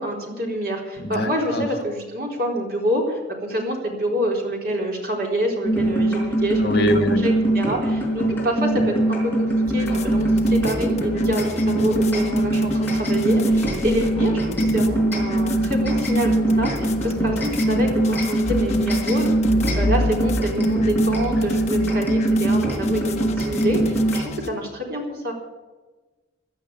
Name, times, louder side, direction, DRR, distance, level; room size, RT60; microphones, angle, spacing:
voice 1, 0.0-19.3 19.7-25.3, equal, 55° right, -1 dB, 4.0 m, -27 dB
voice 2, 1.2-1.6 6.6-7.2, equal, 60° left, 6 dB, 1.5 m, -22 dB
sound 1, 5.6-24.2, right 1 dB, 10° left, 4.7 m, -22 dB
sound 2, 9.6-24.5, left 2 dB, 35° left, 1.2 m, -33 dB
15.5 x 10.5 x 7.2 m, 1.2 s
head